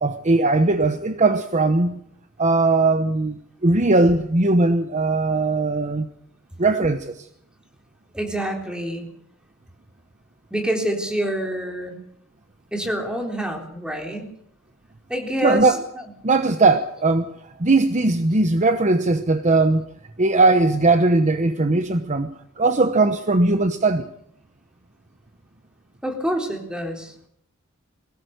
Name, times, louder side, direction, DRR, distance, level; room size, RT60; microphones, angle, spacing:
voice 1, 0.0-2.0 2.4-6.1 6.6-7.3 15.4-15.8 16.2-17.3 17.6-19.8 20.2-22.3 22.6-24.1, right 3 dB, 35° right, 1.0 m, -19 dB
voice 2, 8.1-9.1 10.5-11.9 12.7-14.3 15.1-15.7 26.0-27.1, equal, 5° right, 3.7 m, -26 dB
22.0 x 18.0 x 6.6 m
head